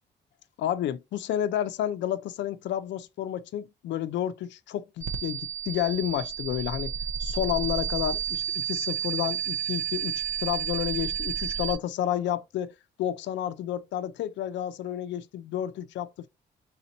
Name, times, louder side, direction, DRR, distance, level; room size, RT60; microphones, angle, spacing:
voice 1, 0.6-6.9 7.2-16.3, left 11 dB, 85° left, 0.5 m, -30 dB
sound 1, 5.0-11.8, right 8 dB, 45° right, 0.7 m, -31 dB
3.9 x 2.9 x 4.0 m
cardioid pair, 135°, 18 cm